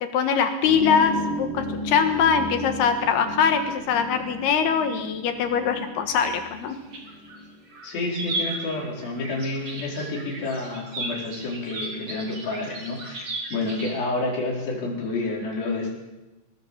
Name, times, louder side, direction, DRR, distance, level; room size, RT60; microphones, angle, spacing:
voice 1, 0.1-6.8, left 6 dB, 65° left, 7 dB, 3.0 m, -22 dB
sound 1, 0.6-7.6, left 1 dB, 35° left, 3.0 m, -34 dB
sound 2, 6.5-7.4 7.7-14.0, right 2 dB, 35° right, 3.1 m, -35 dB
voice 2, 7.8-15.9, left 2 dB, 50° left, -2 dB, 6.3 m, -29 dB
21.0 x 19.5 x 7.3 m, 1.1 s
omnidirectional pair, 5.6 m